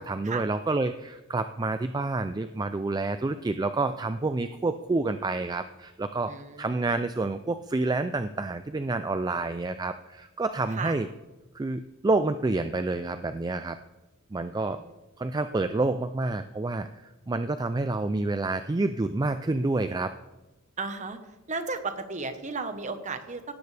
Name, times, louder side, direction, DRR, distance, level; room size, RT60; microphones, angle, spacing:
voice 1, 0.0-11.1 11.5-13.8 14.3-14.8 15.2-20.2, right 3 dB, 20° right, 10 dB, 0.3 m, -28 dB
voice 2, 6.3-6.7 10.7-10.9 14.5-14.9 20.8-21.2 21.5-23.5, right 4 dB, 35° right, 8 dB, 1.1 m, -34 dB
17.0 x 13.5 x 3.4 m, 1.1 s
head